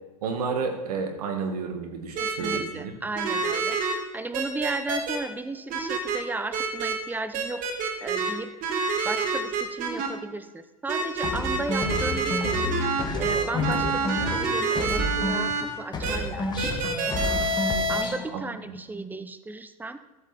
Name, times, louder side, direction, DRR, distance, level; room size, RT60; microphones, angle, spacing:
voice 1, 0.2-2.9 18.3-18.4 18.7-18.8, right 5 dB, 75° right, 5 dB, 2.1 m, -31 dB
voice 2, 2.2-7.7 8.0-8.5 9.0-12.8 13.2-16.9 17.7-20.0, right 2 dB, 10° right, 11 dB, 0.8 m, -35 dB
sound 1, 2.2-2.6 3.2-3.9 4.3-5.2 5.7-6.2 6.5-6.9 7.3-8.3 8.6-10.1 10.9-15.6 16.0-16.2 16.6-18.0, right 4 dB, 45° right, 2.2 m, -27 dB
sound 2, 11.2-15.6 15.9-18.3, left 2 dB, 20° left, 2.1 m, -30 dB
13.5 x 7.6 x 4.3 m, 1.1 s
hypercardioid pair, 105°, 20 cm